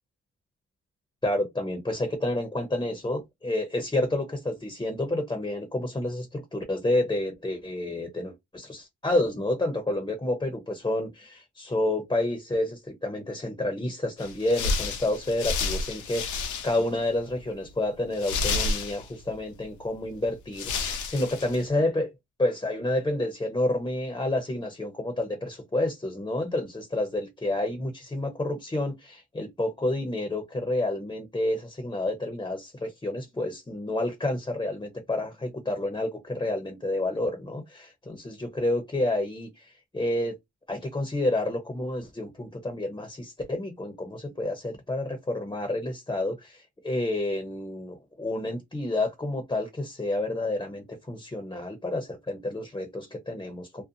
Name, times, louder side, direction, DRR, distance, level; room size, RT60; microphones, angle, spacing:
voice 1, 1.2-22.1 22.4-40.3 40.7-53.8, left 1 dB, 15° left, 0.7 m, -29 dB
sound 1, 14.2-17.0 17.3-17.4 18.1-19.3 20.1-20.2 20.5-21.6, left 3 dB, 75° left, 0.7 m, -30 dB
2.6 x 2.1 x 2.7 m
cardioid pair, 90°, 30 cm